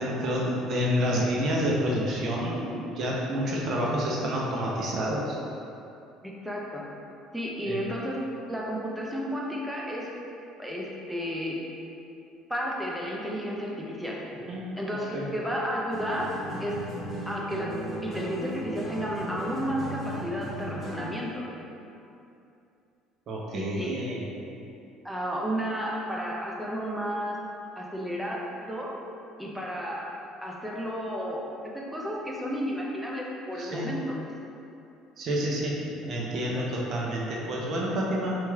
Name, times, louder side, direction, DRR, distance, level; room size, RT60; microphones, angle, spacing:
voice 1, 0.0-5.4 7.7-7.8 14.5-15.3 23.3-24.3 33.6-33.9 35.2-38.4, equal, 55° right, -4 dB, 0.6 m, -29 dB
voice 2, 6.2-6.8 7.3-8.2 8.5-10.1 10.6-11.6 12.5-14.2 14.8-16.3 16.6-16.8 17.3-17.7 18.0-21.4 23.5-23.9 25.0-27.4 27.8-28.9 29.4-30.0 30.4-31.4 31.7-34.1, equal, 5° right, -3 dB, 0.6 m, -32 dB
sound 1, 15.9-21.3, equal, 35° right, 1.3 m, -36 dB
3.0 x 2.9 x 2.3 m, 2.7 s
hypercardioid pair, 70°, 0 cm